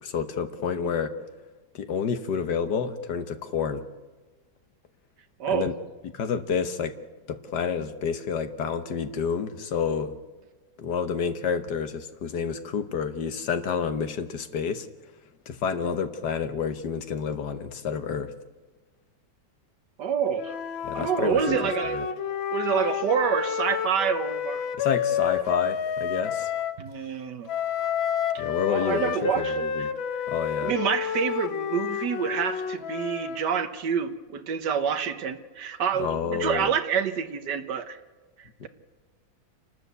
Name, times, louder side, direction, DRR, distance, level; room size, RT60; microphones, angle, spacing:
voice 1, 0.0-1.1 1.7-3.8 5.5-5.7 6.1-6.9 7.3-10.2 10.8-14.9 15.5-18.3 20.8-21.6 21.9-22.0 24.7-26.5 28.4-29.9 30.3-30.7 36.0-36.7 38.6-38.7, left 6 dB, 60° left, 9 dB, 1.7 m, -29 dB
voice 2, 20.0-20.5 20.9-22.1 22.5-24.6 26.8-27.5 28.3-29.9 30.6-38.0 38.4-38.7, right 7 dB, 65° right, 9 dB, 1.7 m, -27 dB
Wind instrument woodwind instrument, 20.4-26.8 27.5-33.5, left 8 dB, 85° left, 1.7 m, -30 dB
28.5 x 12.5 x 8.2 m, 1.3 s
omnidirectional pair, 2.1 m